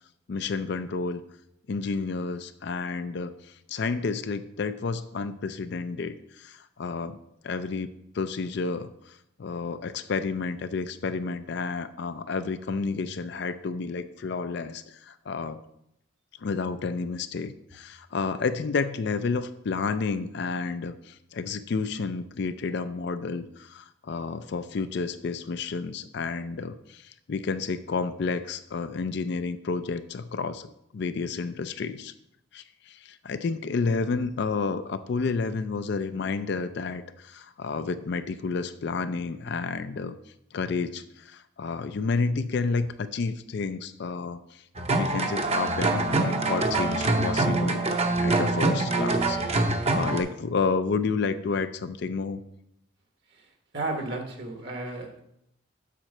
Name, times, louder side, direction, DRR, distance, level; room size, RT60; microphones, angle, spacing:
voice 1, 0.3-1.2 1.7-7.2 7.4-15.6 16.4-32.1 32.5-40.2 40.5-44.6 44.9-47.9 48.2-52.4, left 4 dB, 55° left, 11 dB, 0.4 m, -30 dB
sound 1, 44.8-50.2, right 2 dB, 30° right, 0.7 m, -25 dB
voice 2, 53.3-55.2, right 2 dB, 55° right, 3 dB, 1.1 m, -34 dB
7.6 x 4.3 x 6.4 m, 0.78 s
head